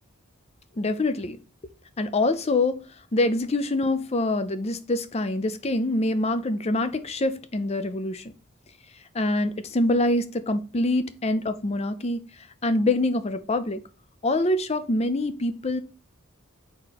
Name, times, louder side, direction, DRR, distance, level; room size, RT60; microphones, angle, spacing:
voice 1, 0.8-1.4 2.0-2.8 3.1-8.3 9.1-12.2 12.6-13.8 14.2-15.8, left 2 dB, 30° left, 0.5 m, -25 dB
4.3 x 4.2 x 5.1 m
head